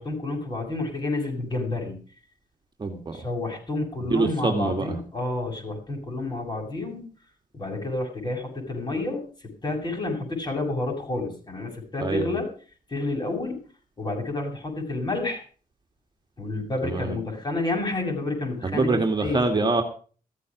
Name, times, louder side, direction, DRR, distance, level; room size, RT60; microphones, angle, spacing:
voice 1, 0.0-2.0 3.1-7.0 7.5-9.2 9.6-12.5 12.9-13.6 14.0-15.4 16.4-19.7, left 2 dB, 30° left, 2 dB, 7.4 m, -29 dB
voice 2, 2.8-3.2 4.1-4.9 12.0-12.4 16.8-17.2 18.6-19.8, right 3 dB, 30° right, 4 dB, 2.1 m, -25 dB
15.5 x 14.5 x 5.1 m, 0.40 s
wide cardioid pair, 150°, 15 cm